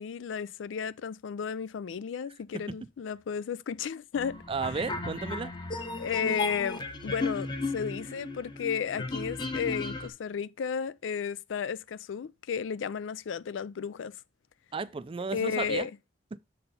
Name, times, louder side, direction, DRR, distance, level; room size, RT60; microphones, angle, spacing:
voice 1, 0.0-4.4 6.0-14.1 15.3-15.9, left 7 dB, 90° left, 0.4 m, -33 dB
sound 1, 4.1-10.1, left 2 dB, 25° left, 0.9 m, -35 dB
voice 2, 4.5-5.5 14.7-15.9 16.3-16.4, right 4 dB, 30° right, 0.4 m, -33 dB
6.8 x 4.3 x 5.4 m
head